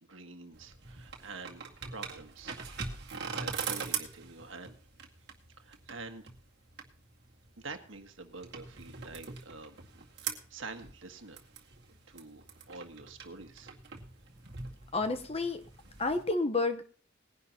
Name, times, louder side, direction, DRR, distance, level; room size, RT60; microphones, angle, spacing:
voice 1, 0.0-2.6 3.2-4.8 5.6-6.3 7.6-9.8 10.2-11.4 12.1-13.7, right 3 dB, 75° right, 6 dB, 1.7 m, -47 dB
sound 1, 0.5-16.2, right 6 dB, 55° right, 2.1 m, -43 dB
voice 2, 14.9-15.6 16.0-16.8, left 3 dB, 30° left, 9 dB, 1.1 m, -30 dB
20.0 x 11.0 x 2.9 m, 0.41 s
head